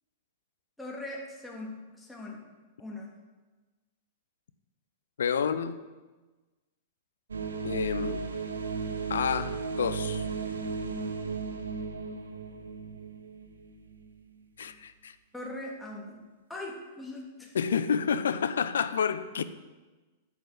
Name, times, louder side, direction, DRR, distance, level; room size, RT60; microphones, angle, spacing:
voice 1, 0.8-2.4 2.8-3.1 15.3-16.2 16.5-17.5, left 1 dB, 5° left, 2.9 m, -40 dB
voice 2, 5.2-5.8 7.6-8.3 9.1-10.2 14.6-15.1 17.5-19.4, left 7 dB, 65° left, 0.7 m, -29 dB
sound 1, 7.3-14.3, right 4 dB, 70° right, 1.2 m, -35 dB
10.0 x 8.3 x 7.7 m
figure-of-eight pair, 100°, 0 cm